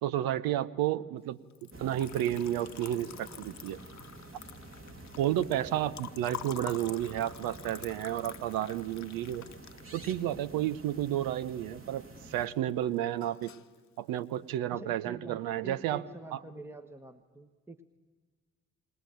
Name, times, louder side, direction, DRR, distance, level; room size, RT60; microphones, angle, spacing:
voice 1, 0.0-1.4 1.8-3.8 5.2-9.5 9.9-12.0 12.3-13.5 14.0-16.0 16.3-16.4, right 12 dB, 70° right, 13 dB, 0.9 m, -31 dB
Liquid, 1.5-11.7 12.0-12.7 13.0-13.7, left 10 dB, 50° left, 1.0 m, -47 dB
sound 1, 1.7-12.5, right 2 dB, 35° right, 2.9 m, -49 dB
voice 2, 14.7-17.8, right 2 dB, 5° right, 8 dB, 1.3 m, -47 dB
20.5 x 19.0 x 9.2 m, 1.4 s
hypercardioid pair, 40°, 37 cm